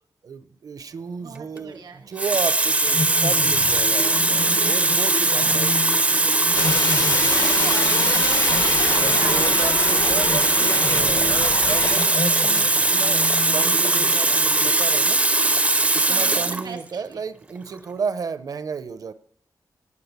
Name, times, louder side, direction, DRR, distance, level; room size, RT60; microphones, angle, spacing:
voice 1, 0.2-5.8 9.0-15.2 15.9-19.1, right 5 dB, 55° right, 14 dB, 0.8 m, -32 dB
voice 2, 1.2-2.1 5.4-5.6 7.3-11.1 15.8-17.2, right 5 dB, 80° right, 6 dB, 1.6 m, -38 dB
Water tap faucet, 1.4-1.6 2.2-16.7 17.6-17.7, right 2 dB, 20° right, 0.6 m, -20 dB
sound 1, 2.9-14.7, left 3 dB, 30° left, 0.6 m, -33 dB
sound 2, 6.5-12.3 12.6-12.7, left 5 dB, 60° left, 1.0 m, -28 dB
17.0 x 8.9 x 8.1 m, 0.68 s
wide cardioid pair, 165°, 7 cm